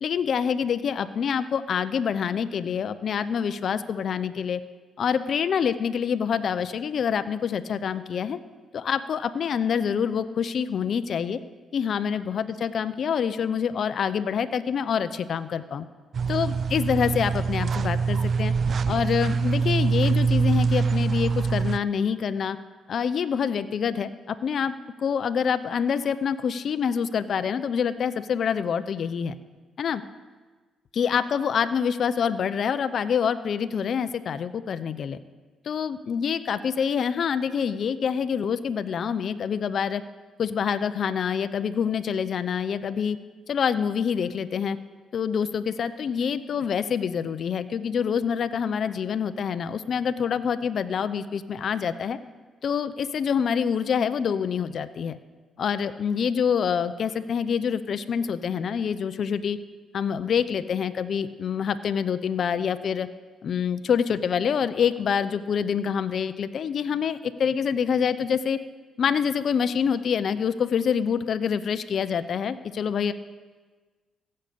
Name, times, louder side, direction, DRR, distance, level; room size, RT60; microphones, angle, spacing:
voice 1, 0.0-4.6 5.0-8.4 8.7-11.4 11.7-15.9 16.3-18.5 18.9-22.6 22.9-24.7 25.0-29.4 29.8-30.0 30.9-35.2 35.6-40.0 40.4-43.2 43.5-44.8 45.1-52.2 52.6-55.2 55.6-59.6 59.9-63.1 63.4-68.6 69.0-73.1, left 7 dB, 55° left, 12 dB, 0.6 m, -26 dB
sound 1, 16.1-21.8, right 5 dB, 50° right, 0.3 m, -24 dB
15.5 x 6.6 x 8.4 m, 1.4 s
cardioid pair, 90°, 0 cm